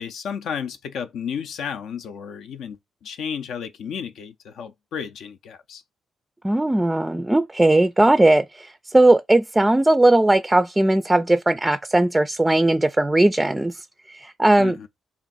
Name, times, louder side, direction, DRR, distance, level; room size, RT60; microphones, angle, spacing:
voice 1, 0.0-5.8 14.6-14.9, left 7 dB, 75° left, 0.4 m, -33 dB
voice 2, 6.4-13.8 14.1-14.8, right 2 dB, 15° right, 0.3 m, -18 dB
3.6 x 2.5 x 4.0 m
supercardioid pair, 60°, 0 cm